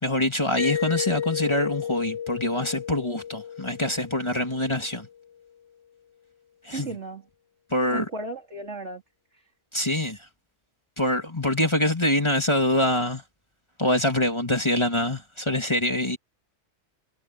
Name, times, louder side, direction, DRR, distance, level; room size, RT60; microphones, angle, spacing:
voice 1, 0.0-5.1 6.6-7.0 7.7-8.1 9.7-10.2 11.0-13.2 13.8-16.2, left 1 dB, 20° left, 2.8 m, -25 dB
Mallet percussion, 0.6-5.2, left 8 dB, 70° left, 1.3 m, -32 dB
voice 2, 6.7-7.2 7.9-9.0, right 3 dB, 65° right, 3.9 m, -35 dB
omnidirectional pair, 1.3 m